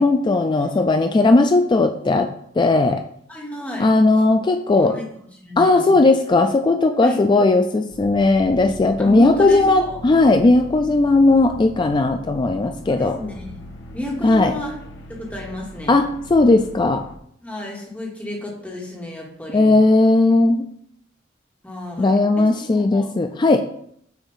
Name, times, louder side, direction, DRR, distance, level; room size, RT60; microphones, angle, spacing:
voice 1, 0.0-2.3 2.6-3.0 3.8-4.9 5.6-13.2 14.2-14.5 15.9-17.0 19.5-20.7 22.0-23.6, left 2 dB, 25° left, 6 dB, 0.3 m, -17 dB
voice 2, 3.3-3.9 4.8-5.1 5.4-6.0 7.0-7.2 9.0-10.0 12.9-14.7 15.1-16.0 17.4-19.8 21.6-23.1, left 1 dB, 10° left, -3 dB, 1.5 m, -32 dB
sound 1, 7.9-17.2, left 1 dB, 75° left, 0.9 m, -39 dB
6.8 x 2.7 x 5.5 m, 0.67 s
head